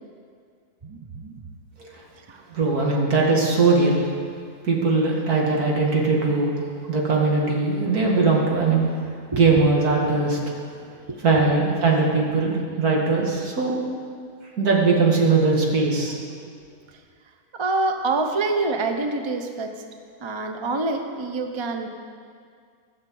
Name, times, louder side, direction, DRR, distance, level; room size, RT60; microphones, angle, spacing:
voice 1, 0.8-1.4 2.3-2.4 2.9-3.0 9.3-9.5 11.1-11.4 16.9-17.0 17.5-19.7 20.2-21.9, right 3 dB, 25° right, 5 dB, 0.7 m, -26 dB
voice 2, 2.5-4.1 4.6-6.5 6.9-8.8 9.3-10.4 11.2-13.8 14.6-16.2, right 3 dB, 80° right, -2 dB, 2.5 m, -20 dB
14.5 x 6.7 x 7.7 m, 2.2 s
omnidirectional pair, 1.6 m